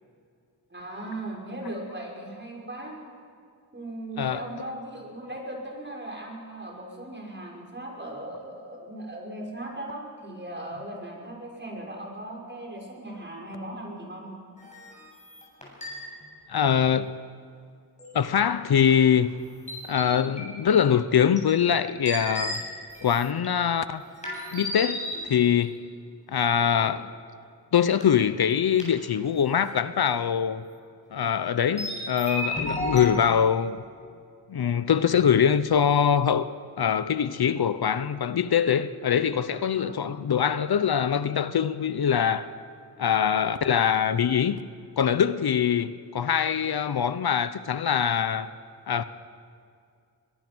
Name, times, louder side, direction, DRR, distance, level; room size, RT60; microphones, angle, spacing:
voice 1, 0.7-3.0 3.7-14.3 39.7-40.1, right 1 dB, 30° right, 6.1 m, -38 dB
sound 1, 14.6-16.2 18.0-18.5 18.9-19.4 19.7-20.5 21.4-21.5 22.0-23.5 24.2-25.6 26.5-26.9 27.9-28.1 28.5-28.6 28.8-29.0 29.6-29.7 31.8-33.0, left 1 dB, 15° left, 7.9 m, -34 dB
voice 2, 16.5-17.1 18.1-19.3 19.9-22.6 23.0-24.0 24.5-25.7 26.3-27.1 27.7-30.6 31.1-33.8 34.5-36.5 36.8-42.5 43.0-44.6 45.0-48.5 48.9-49.0, left 8 dB, 65° left, 0.8 m, -23 dB
22.5 x 21.5 x 6.3 m
wide cardioid pair, 85°, 40 cm